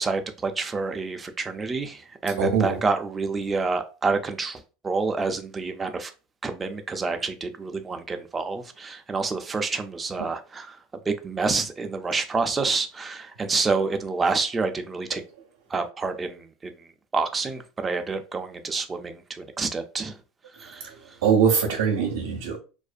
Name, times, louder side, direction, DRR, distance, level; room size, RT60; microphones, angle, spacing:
voice 1, 0.0-4.6 4.8-6.1 6.4-10.7 11.1-15.2 15.7-16.4 17.1-19.2 19.6-20.1 20.6-20.7, right 4 dB, 15° right, 0.3 m, -28 dB
voice 2, 2.4-2.8 10.2-10.3 15.1-15.2 20.9-21.0 21.2-22.6, right 6 dB, 85° right, 0.5 m, -22 dB
2.4 x 2.1 x 2.5 m
supercardioid pair, 130°, 0 cm